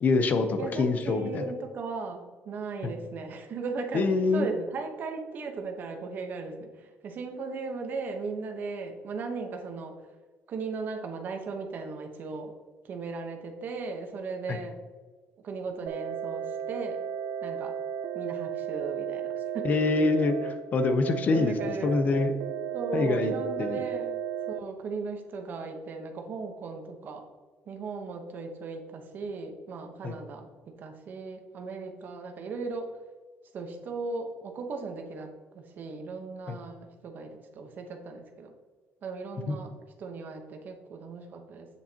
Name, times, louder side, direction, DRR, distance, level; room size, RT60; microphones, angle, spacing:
voice 1, 0.0-1.5 2.8-2.9 3.9-4.5 14.5-14.6 19.6-21.5 21.8-22.3 22.9-23.3 23.6-23.8 30.0-30.1 36.5-36.6 39.5-39.6, left 3 dB, 35° left, 8 dB, 0.7 m, -25 dB
voice 2, 0.6-10.0 10.5-12.5 12.8-14.8 15.4-17.0 17.4-17.7 18.1-19.7 21.3-22.2 22.7-24.1 24.5-27.2 27.7-33.0 33.5-38.5 39.0-39.7 40.0-41.7, right 4 dB, 40° right, 4 dB, 1.0 m, -37 dB
sound 1, 15.9-24.6, right 9 dB, 75° right, 0.3 m, -34 dB
8.1 x 7.2 x 2.9 m, 1.5 s
cardioid pair, 175°, 5 cm